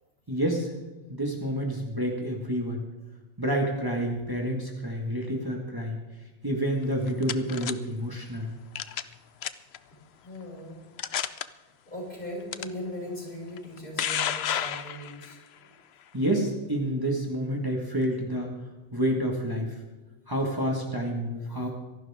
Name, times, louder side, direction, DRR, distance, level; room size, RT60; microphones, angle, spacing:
voice 1, 0.3-0.7 1.1-2.8 3.4-6.0 6.4-8.5 16.1-18.5 18.9-19.8 20.3-21.7, equal, 20° right, 0 dB, 2.0 m, -28 dB
sound 1, 6.8-7.7 8.8-9.1 9.4-9.8 10.4-10.5 11.0-11.4 12.5-12.6 13.6-15.3, left 9 dB, 65° left, 0.9 m, -30 dB
voice 2, 10.2-10.8 11.9-15.4 21.5-21.7, left 1 dB, 50° left, -4 dB, 6.4 m, -39 dB
25.0 x 12.0 x 3.7 m, 1.1 s
omnidirectional pair, 1.2 m